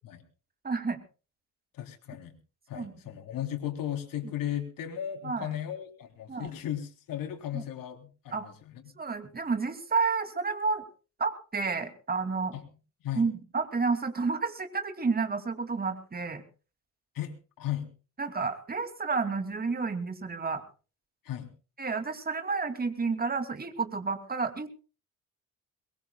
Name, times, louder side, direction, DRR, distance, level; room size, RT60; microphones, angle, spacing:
voice 1, 0.6-1.0 2.7-2.9 5.2-5.5 6.3-6.5 7.5-7.6 8.3-8.5 9.0-10.8 11.2-12.5 13.2-16.4 18.2-20.6 21.8-24.7, right 4 dB, 30° right, 8 dB, 2.6 m, -30 dB
voice 2, 1.7-2.4 2.7-8.8 12.5-12.6 13.0-13.2 17.1-17.9 21.2-21.5, left 11 dB, 85° left, 4 dB, 3.4 m, -36 dB
23.0 x 21.0 x 2.3 m, 0.35 s
cardioid pair, 120°, 33 cm